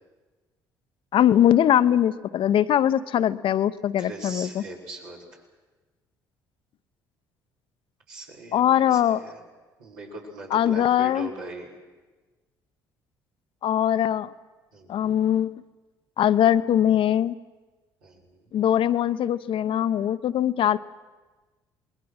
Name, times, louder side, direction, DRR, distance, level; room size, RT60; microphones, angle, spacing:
voice 1, 1.1-4.6 8.5-9.2 10.5-11.3 13.6-14.3 14.9-15.6 16.2-17.3 18.5-20.8, left 10 dB, 55° left, 13 dB, 0.8 m, -21 dB
voice 2, 4.0-5.4 8.1-9.4 9.8-11.7 14.7-15.2 18.0-18.5, right 2 dB, 80° right, -4 dB, 5.7 m, -40 dB
28.0 x 20.5 x 6.5 m, 1.3 s
hypercardioid pair, 55°, 11 cm